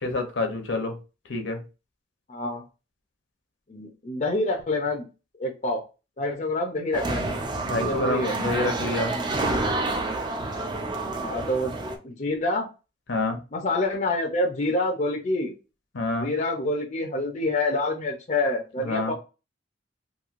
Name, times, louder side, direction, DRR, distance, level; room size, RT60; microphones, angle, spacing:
voice 1, 0.0-0.9 1.3-1.6 7.7-9.2 13.1-13.4 15.9-16.3 18.8-19.1, left 2 dB, 75° left, 5 dB, 0.7 m, -27 dB
voice 2, 2.3-2.6 3.7-5.1 5.4-5.8 6.2-7.3 7.8-8.4 11.1-11.7 12.0-12.7 13.5-15.5 16.2-19.1, left 2 dB, 40° left, 2 dB, 0.5 m, -27 dB
sound 1, 6.9-12.0, right 2 dB, 25° right, 0.4 m, -28 dB
3.0 x 2.6 x 2.5 m, 0.31 s
head